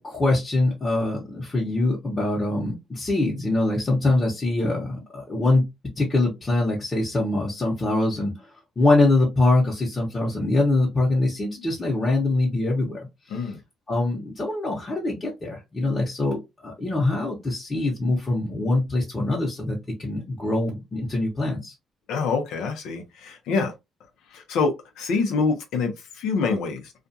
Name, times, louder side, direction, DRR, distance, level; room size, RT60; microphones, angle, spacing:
voice 1, 0.0-5.7 6.0-8.3 8.8-13.4 13.9-21.7, left 2 dB, 30° left, 0.9 m, -23 dB
voice 2, 22.1-23.7 24.3-26.9, left 4 dB, 90° left, 0.7 m, -26 dB
2.4 x 2.3 x 2.6 m
cardioid pair, 90°, 0 cm